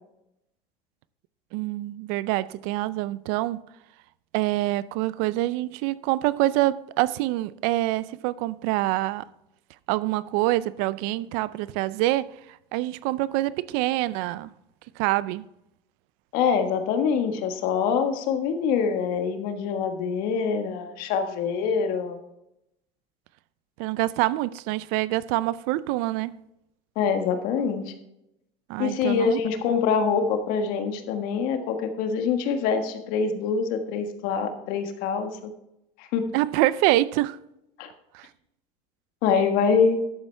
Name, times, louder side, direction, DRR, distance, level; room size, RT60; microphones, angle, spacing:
voice 1, 1.5-3.6 4.3-9.2 9.9-14.5 15.0-15.4 23.8-26.3 28.7-29.4 36.3-37.4 38.1-38.3, right 17 dB, 75° right, 0.5 m, -26 dB
voice 2, 16.3-22.2 26.9-27.8 28.8-35.5 36.0-36.2 37.8-37.9 39.2-40.0, left 6 dB, 70° left, 1.6 m, -25 dB
11.5 x 8.2 x 3.4 m
supercardioid pair, 105°, 15 cm